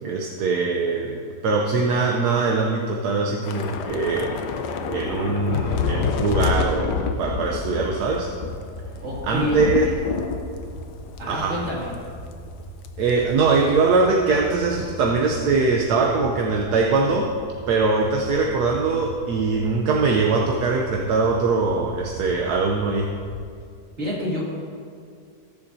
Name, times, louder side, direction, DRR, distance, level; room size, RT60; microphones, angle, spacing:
voice 1, 0.0-4.3 4.9-8.3 9.2-9.9 11.3-11.6 13.0-17.3 17.7-23.1, right 4 dB, 75° right, 0 dB, 1.3 m, -22 dB
Thunder / Rain, 3.4-12.0 12.3-12.5 12.8-13.1, left 6 dB, 85° left, 1.3 m, -28 dB
sound 1, 3.6-23.5, equal, 5° left, 1.2 m, -40 dB
voice 2, 9.0-10.0 11.2-11.9 24.0-24.5, left 1 dB, 50° right, -6 dB, 2.9 m, -28 dB
20.0 x 7.1 x 2.7 m, 2.2 s
omnidirectional pair, 1.7 m